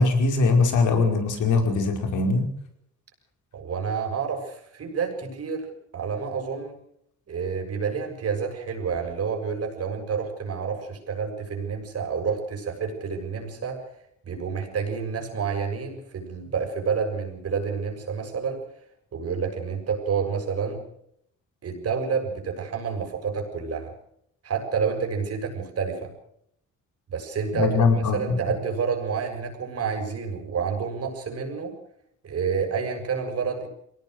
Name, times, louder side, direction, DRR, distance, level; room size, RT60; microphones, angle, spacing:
voice 1, 0.0-2.5 27.5-28.4, left 3 dB, 75° left, 4 dB, 5.1 m, -21 dB
voice 2, 3.5-5.7 5.9-6.8 7.3-13.9 14.2-18.6 19.1-20.8 21.6-23.9 24.4-26.1 27.1-31.7 32.2-33.7, right 6 dB, 55° right, 3 dB, 7.0 m, -29 dB
23.5 x 18.5 x 6.6 m, 0.72 s
cardioid pair, 90°, 30 cm